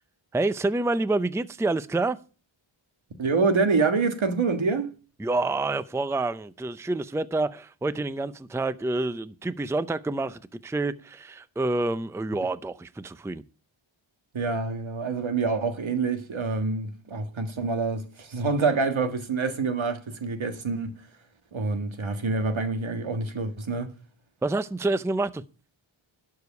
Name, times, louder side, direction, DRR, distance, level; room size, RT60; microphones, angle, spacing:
voice 1, 0.3-2.2 5.2-13.4 24.4-25.4, right 2 dB, 5° right, 0.5 m, -28 dB
voice 2, 3.2-5.0 14.3-21.1 21.5-23.9, right 4 dB, 75° right, 1.7 m, -26 dB
12.0 x 4.9 x 8.2 m
wide cardioid pair, 80°, 48 cm